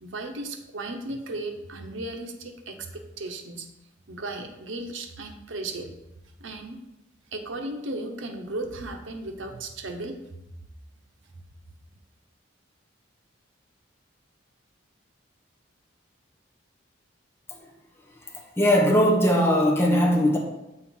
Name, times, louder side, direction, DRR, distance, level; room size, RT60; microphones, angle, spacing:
voice 1, 0.0-3.7 4.1-5.9 6.2-6.8 7.3-10.4, right 2 dB, 80° right, 3 dB, 0.9 m, -35 dB
voice 2, 18.3-20.4, equal, 10° left, 0 dB, 0.8 m, -20 dB
8.0 x 4.5 x 3.8 m, 0.94 s
head